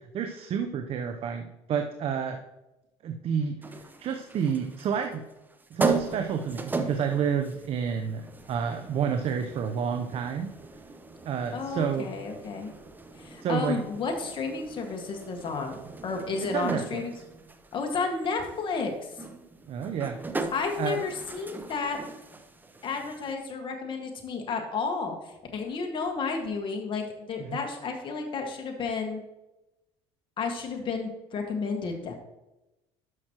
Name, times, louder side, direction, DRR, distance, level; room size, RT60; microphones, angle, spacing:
voice 1, 0.1-2.4 3.0-5.2 5.7-8.2 8.5-10.5 11.2-12.1 13.4-13.8 16.4-17.0 19.7-20.2 20.8-21.0 27.4-27.6, right 7 dB, 50° right, 5 dB, 0.8 m, -29 dB
sound 1, 3.6-23.3, right 4 dB, 15° right, 0.8 m, -37 dB
voice 2, 11.5-12.7 13.1-17.1 17.7-19.1 20.5-22.0 22.8-29.2 30.4-32.1, left 4 dB, 40° left, 3 dB, 1.7 m, -32 dB
12.5 x 6.1 x 3.0 m, 0.96 s
supercardioid pair, 100°, 13 cm